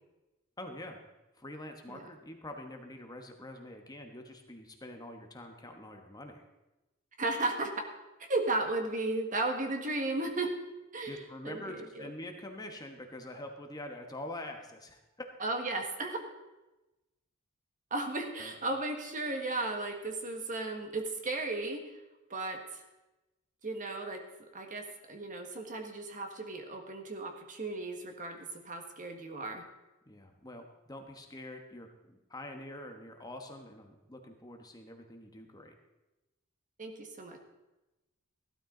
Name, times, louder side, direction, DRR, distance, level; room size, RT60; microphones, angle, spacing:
voice 1, 0.6-1.0 1.3-6.4 11.0-15.0 18.4-18.5 30.1-35.7, left 1 dB, 20° left, 4 dB, 1.2 m, -45 dB
voice 2, 7.2-7.8 8.2-10.5 10.9-12.1 15.4-16.2 17.9-21.9 22.3-22.8 23.6-24.2 24.5-29.7 36.8-37.4, right 2 dB, 40° right, 4 dB, 1.6 m, -35 dB
15.5 x 12.5 x 3.9 m, 1.0 s
head